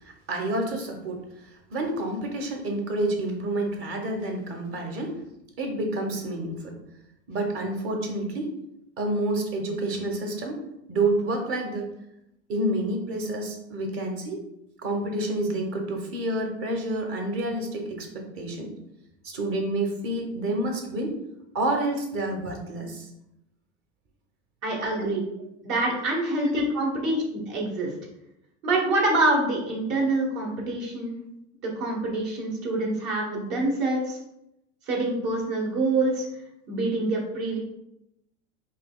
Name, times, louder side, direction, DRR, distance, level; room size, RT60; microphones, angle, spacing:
voice 1, 0.0-5.2 5.6-6.7 7.3-8.5 9.0-10.6 10.9-11.8 12.5-14.4 14.8-18.7 19.2-21.1 21.5-23.1 24.9-25.1 26.4-26.6, right 1 dB, 40° right, 3 dB, 0.9 m, -29 dB
voice 2, 24.6-25.2 25.6-27.9 28.6-31.1 31.6-34.2 34.9-36.3 36.7-37.6, right 2 dB, 55° right, -1 dB, 1.3 m, -26 dB
5.1 x 2.4 x 2.3 m, 0.84 s
hypercardioid pair, 85°, 35 cm